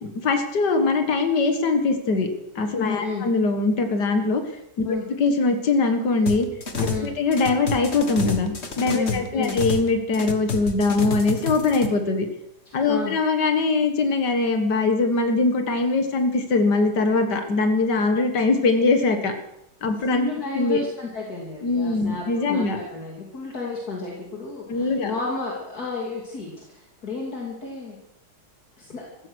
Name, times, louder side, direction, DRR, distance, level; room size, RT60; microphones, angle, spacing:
voice 1, 0.0-2.3 2.6-4.4 4.8-4.9 5.2-6.5 6.8-12.3 12.7-19.3 19.8-20.3 20.5-20.8 21.6-22.8 24.7-25.1, left 3 dB, 80° left, 6 dB, 2.3 m, -22 dB
voice 2, 2.8-3.3 4.8-5.0 6.9-7.1 8.9-9.5 12.7-13.1 20.0-28.0 28.8-29.0, left 3 dB, 65° left, -2 dB, 3.2 m, -32 dB
sound 1, 6.3-7.1 7.3-9.9 10.1-11.9, left 3 dB, 40° left, 1.8 m, -29 dB
15.5 x 15.0 x 6.3 m, 0.83 s
omnidirectional pair, 1.8 m